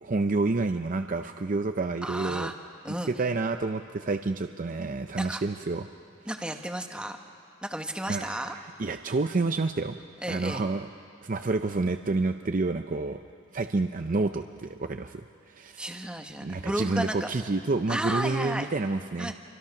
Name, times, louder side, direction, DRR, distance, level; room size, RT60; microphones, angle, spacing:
voice 1, 0.0-2.5 2.9-5.8 8.1-10.0 10.3-10.9 11.2-13.2 13.5-16.1 16.4-19.3, right 3 dB, 40° right, 7 dB, 0.5 m, -29 dB
voice 2, 2.0-2.5 2.8-3.1 5.2-5.4 6.3-7.2 7.6-8.5 10.2-10.6 15.8-17.3 17.9-18.7 19.2-19.3, right 1 dB, 5° right, 4 dB, 1.2 m, -33 dB
28.0 x 25.0 x 6.0 m, 2.4 s
head